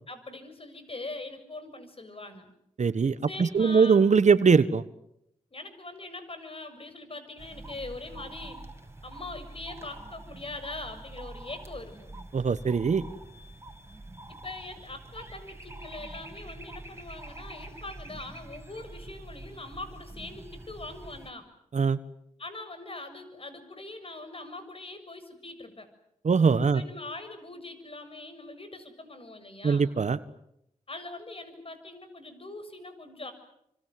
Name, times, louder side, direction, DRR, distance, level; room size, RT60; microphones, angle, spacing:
voice 1, 0.1-2.5 3.3-4.0 5.5-8.6 9.0-12.1 14.3-21.5 22.4-25.9 26.7-29.9 30.9-33.3, left 2 dB, 45° left, 10 dB, 6.9 m, -42 dB
voice 2, 2.8-4.8 12.3-13.0 21.7-22.0 26.2-26.8 29.6-30.2, right 5 dB, 60° right, 14 dB, 1.4 m, -22 dB
sound 1, 7.4-21.3, right 2 dB, 20° right, 5.9 m, -45 dB
28.0 x 26.0 x 7.8 m, 0.78 s
supercardioid pair, 40°, 14 cm